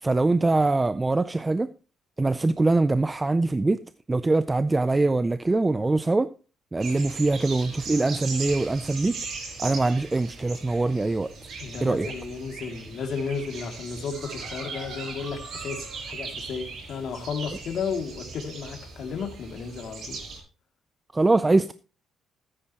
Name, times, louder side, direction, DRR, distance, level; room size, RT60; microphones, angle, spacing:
voice 1, 0.0-1.7 2.2-3.8 4.1-6.3 6.7-9.2 9.6-11.3 11.8-12.1 21.1-21.7, right 2 dB, 15° right, 0.4 m, -23 dB
sound 1, 6.8-20.4, right 4 dB, 60° right, 6.2 m, -39 dB
voice 2, 11.6-15.8 16.0-20.2, left 5 dB, 60° left, 2.5 m, -33 dB
13.5 x 9.9 x 3.0 m
cardioid pair, 125°, 0 cm